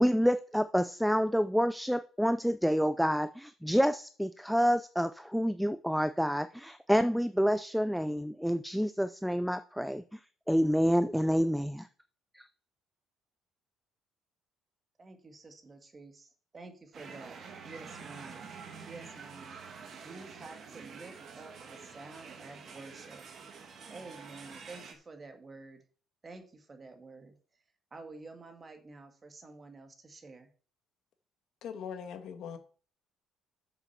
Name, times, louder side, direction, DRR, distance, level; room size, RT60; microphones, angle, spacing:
voice 1, 0.0-10.2 10.5-11.9 12.3-12.5, equal, ahead, 0.4 m, -28 dB
voice 2, 15.0-17.4 17.6-18.4 18.9-19.6 20.0-23.2 23.9-25.8 26.2-27.4 27.9-30.5, right 3 dB, 20° right, 1.7 m, -50 dB
sound 1, 16.9-24.9, right 5 dB, 45° right, 1.9 m, -47 dB
voice 3, 31.6-32.6, left 7 dB, 60° left, 1.5 m, -40 dB
7.0 x 6.8 x 7.1 m
cardioid pair, 140°, 0 cm